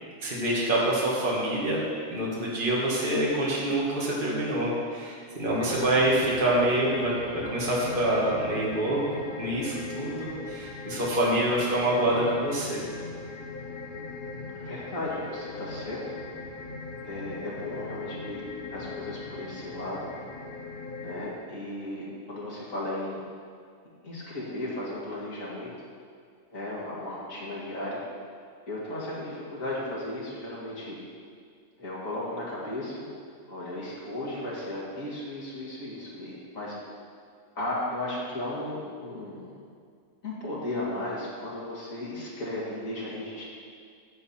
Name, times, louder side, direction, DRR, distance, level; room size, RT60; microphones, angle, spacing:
voice 1, 0.2-1.8 2.1-9.0 9.4-12.8, right 1 dB, 40° right, -5 dB, 2.0 m, -26 dB
sound 1, 5.5-21.3, left 3 dB, 45° left, 1.1 m, -39 dB
voice 2, 14.6-16.0 17.0-18.4 18.7-20.1 21.0-23.2 24.0-25.7 26.5-28.0 28.6-31.0 31.8-33.1 33.5-36.8 37.6-39.5 40.2-43.4, left 1 dB, 90° left, -7 dB, 2.5 m, -35 dB
13.0 x 7.8 x 4.3 m, 2.1 s
omnidirectional pair, 1.4 m